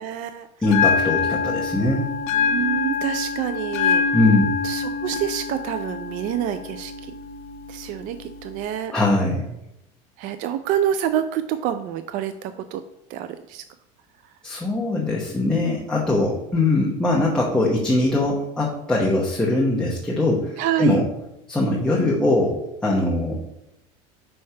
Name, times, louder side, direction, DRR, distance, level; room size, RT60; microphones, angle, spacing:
voice 1, 0.0-0.5 2.3-4.0 4.6-7.1 7.7-8.9 10.2-12.8 13.1-13.6 20.6-21.0, right 10 dB, 55° right, 10 dB, 0.4 m, -27 dB
Bell, 0.6-8.6, left 5 dB, 60° left, 0.8 m, -25 dB
voice 2, 0.6-2.0 4.1-4.6 8.9-9.4 14.4-21.0 21.5-23.4, left 2 dB, 5° left, -4 dB, 1.0 m, -21 dB
5.4 x 3.3 x 5.6 m, 0.84 s
supercardioid pair, 120°, 17 cm